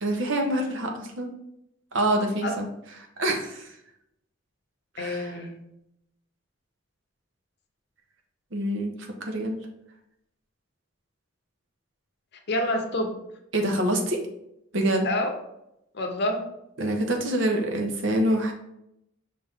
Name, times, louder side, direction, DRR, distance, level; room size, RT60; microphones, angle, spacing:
voice 1, 0.0-1.3 1.9-2.7 3.2-3.7 4.9-5.3 8.5-8.9 9.3-9.6 13.5-14.2 14.7-15.1 16.8-18.5, right 1 dB, 70° right, 3 dB, 0.8 m, -26 dB
voice 2, 5.0-5.6 12.5-13.1 15.0-15.3 15.9-16.5, left 1 dB, 60° left, 3 dB, 0.7 m, -27 dB
5.5 x 2.6 x 3.5 m, 0.81 s
head